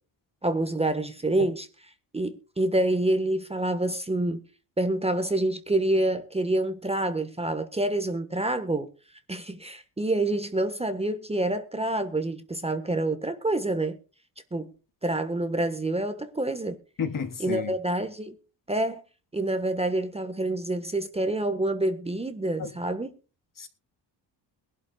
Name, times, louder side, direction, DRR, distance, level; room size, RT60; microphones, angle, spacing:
voice 1, 0.4-1.7 2.1-4.4 4.8-8.9 9.3-14.0 14.5-14.7 15.0-16.8 17.4-18.4 18.7-19.0 19.3-23.1, right 1 dB, 15° right, 1.3 m, -27 dB
voice 2, 17.0-17.7 22.6-22.7 23.6-23.7, left 7 dB, 45° left, 2.8 m, -31 dB
22.0 x 12.0 x 2.3 m
cardioid pair, 100°, 44 cm